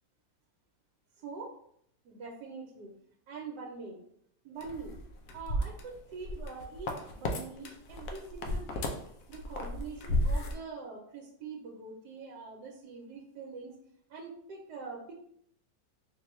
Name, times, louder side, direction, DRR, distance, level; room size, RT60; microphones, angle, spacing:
voice 1, 1.2-1.5 2.0-3.0 3.3-4.0 4.4-5.0 5.3-8.9 9.3-13.7 14.1-15.1, right 4 dB, 70° right, -1 dB, 1.2 m, -44 dB
sound 1, 4.6-7.4 7.7-10.5, left 1 dB, 70° left, 1.0 m, -33 dB
4.5 x 2.2 x 3.0 m, 0.67 s
omnidirectional pair, 2.0 m